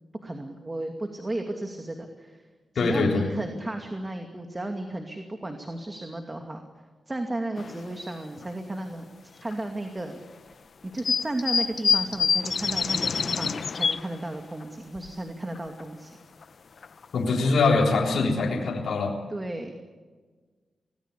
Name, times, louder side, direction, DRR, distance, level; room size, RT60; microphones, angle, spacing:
voice 1, 0.2-2.4 2.7-6.6 7.1-10.2 10.8-16.2 19.3-19.7, right 1 dB, 25° right, 4 dB, 2.5 m, -34 dB
voice 2, 2.8-3.3 17.1-19.1, left 3 dB, 75° left, -1 dB, 3.7 m, -23 dB
sound 1, 7.6-7.8 8.4-8.5 9.5-9.6 11.0-14.2 14.6-14.7 15.0-15.1 15.6-15.8 16.4-16.5 16.8-17.0 17.4-17.5, left 5 dB, 60° left, 0.9 m, -26 dB
25.0 x 19.5 x 8.4 m, 1.4 s
cardioid pair, 75°, 0 cm